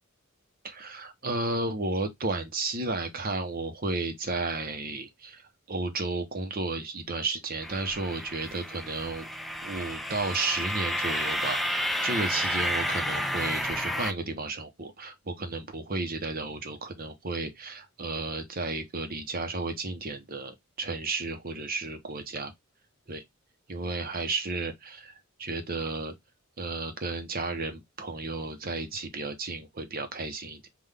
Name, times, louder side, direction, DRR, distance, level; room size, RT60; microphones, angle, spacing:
voice 1, 0.6-5.4 5.7-9.3 9.6-22.5 23.1-23.2 23.7-25.1 25.4-26.1 26.6-30.7, right 3 dB, 45° right, 0.9 m, -33 dB
sound 1, 7.6-14.1, equal, ahead, 0.4 m, -31 dB
5.7 x 2.5 x 3.4 m
head